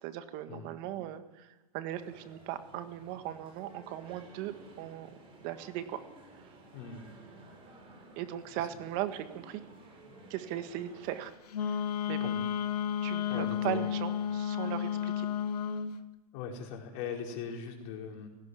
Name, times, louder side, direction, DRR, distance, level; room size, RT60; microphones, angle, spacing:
voice 1, 0.0-5.1 5.4-6.0 8.2-9.6 10.3-11.3 11.6-11.8 12.1-12.3 13.0-15.3, right 12 dB, 45° right, 9 dB, 1.7 m, -38 dB
sound 1, 1.9-11.3, right 2 dB, 30° right, 6.7 m, -55 dB
voice 2, 6.7-7.1 8.5-8.8 12.2-12.5 13.3-13.9 16.3-18.3, left 6 dB, 50° left, 1 dB, 4.8 m, -40 dB
Wind instrument woodwind instrument, 11.5-15.9, left 9 dB, 85° left, 1.1 m, -32 dB
18.0 x 17.5 x 9.8 m, 1.1 s
hypercardioid pair, 130°, 20 cm